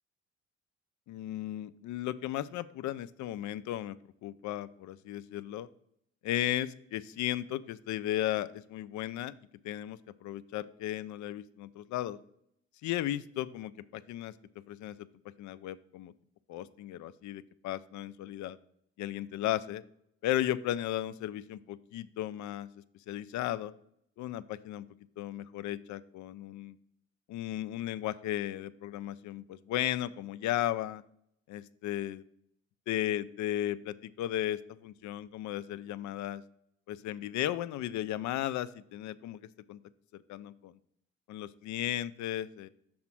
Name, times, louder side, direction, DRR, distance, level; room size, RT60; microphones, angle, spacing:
voice 1, 1.1-4.0 4.2-5.7 6.2-9.3 9.6-12.2 12.8-14.3 14.7-15.1 15.4-16.1 16.5-18.6 19.0-19.8 20.2-22.7 23.1-23.7 24.2-24.9 25.2-26.8 27.3-31.0 31.5-32.2 32.9-36.4 36.9-39.4 39.7-39.8 40.1-40.8 41.3-42.7, left 13 dB, 75° left, 15 dB, 0.5 m, -35 dB
6.0 x 4.3 x 5.8 m, 0.74 s
supercardioid pair, 65°, 29 cm